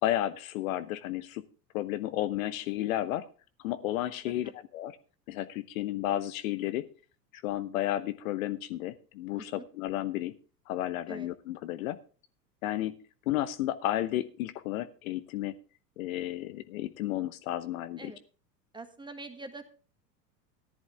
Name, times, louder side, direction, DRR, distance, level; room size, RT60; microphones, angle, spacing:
voice 1, 0.0-1.4 1.7-3.3 3.6-5.0 5.3-6.9 7.3-10.3 10.7-12.0 12.6-13.0 13.3-15.6 16.0-18.1, left 13 dB, 55° left, 13 dB, 0.9 m, -32 dB
voice 2, 9.3-9.7 11.1-11.3 18.0-18.2 18.7-19.6, right 3 dB, 10° right, 8 dB, 1.6 m, -44 dB
14.0 x 11.0 x 3.5 m, 0.37 s
figure-of-eight pair, 85°, 50 cm